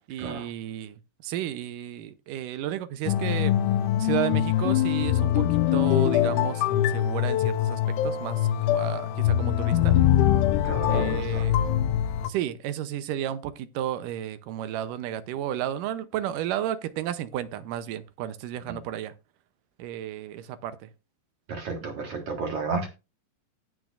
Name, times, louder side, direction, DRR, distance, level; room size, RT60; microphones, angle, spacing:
voice 1, 0.1-3.5 4.0-10.0 10.9-11.6 12.3-19.1 19.8-20.9 21.8-22.0, right 11 dB, 80° right, 2.3 m, -33 dB
sound 1, 3.1-12.3, left 11 dB, 75° left, 2.0 m, -23 dB
voice 2, 10.6-11.6 18.7-18.8 21.5-22.9, right 4 dB, 50° right, 2.3 m, -32 dB
17.0 x 6.3 x 2.5 m
omnidirectional pair, 3.9 m